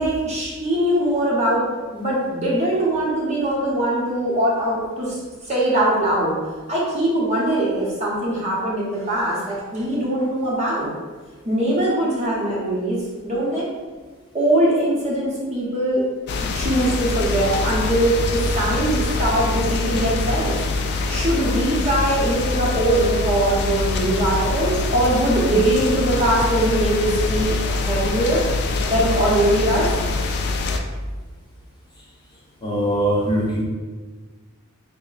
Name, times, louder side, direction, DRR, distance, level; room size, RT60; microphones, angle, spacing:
voice 1, 0.0-1.6 1.9-5.2 5.4-6.3 6.7-10.9 11.4-13.0 13.2-13.7 14.3-16.0 16.5-20.6 21.1-28.4 28.8-29.9, right 1 dB, 30° right, -5 dB, 0.8 m, -21 dB
sound 1, 16.3-30.8, left 3 dB, 50° left, 0.3 m, -24 dB
voice 2, 32.6-33.6, right 1 dB, 20° left, -6 dB, 0.7 m, -21 dB
3.5 x 2.1 x 3.9 m, 1.4 s
head